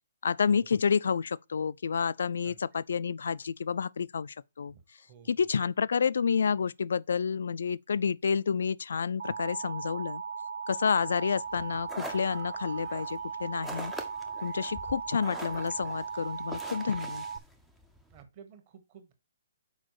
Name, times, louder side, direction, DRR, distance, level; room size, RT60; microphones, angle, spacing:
voice 1, 0.2-4.7 5.3-10.2 10.7-13.9 14.4-17.3, left 6 dB, 65° left, 0.3 m, -29 dB
Alarm, 9.2-17.4, right 6 dB, 60° right, 0.4 m, -38 dB
sound 1, 11.5-18.2, right 1 dB, ahead, 0.5 m, -45 dB
voice 2, 18.1-19.1, right 7 dB, 25° right, 1.2 m, -52 dB
6.2 x 4.9 x 4.8 m
hypercardioid pair, 175°, 0 cm